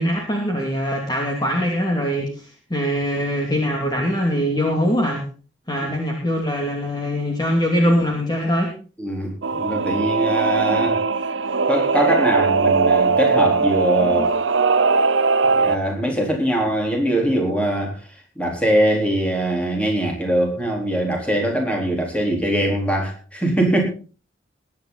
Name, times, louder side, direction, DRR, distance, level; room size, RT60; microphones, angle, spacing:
voice 1, 0.0-5.2 5.7-8.7 14.2-14.3, equal, 20° left, 0 dB, 2.7 m, -22 dB
voice 2, 9.0-11.0 11.7-14.4 15.6-18.0 18.4-23.8, right 1 dB, 5° left, 1 dB, 4.1 m, -22 dB
Singing / Musical instrument, 9.4-15.8, right 4 dB, 75° right, 0.8 m, -19 dB
21.0 x 9.7 x 4.1 m, 0.38 s
head